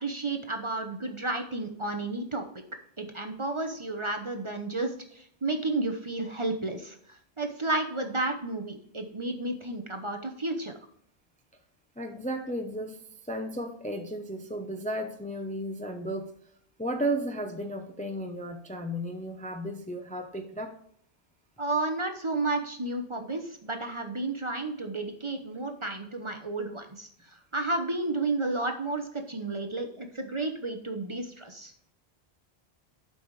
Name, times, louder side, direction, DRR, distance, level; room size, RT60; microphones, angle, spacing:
voice 1, 0.0-2.4 3.0-10.8 21.6-31.7, right 2 dB, 30° right, 5 dB, 0.9 m, -32 dB
voice 2, 12.0-13.0 13.2-16.3 16.8-20.8, right 1 dB, 10° left, 5 dB, 0.6 m, -34 dB
11.5 x 5.5 x 3.2 m, 0.66 s
omnidirectional pair, 1.1 m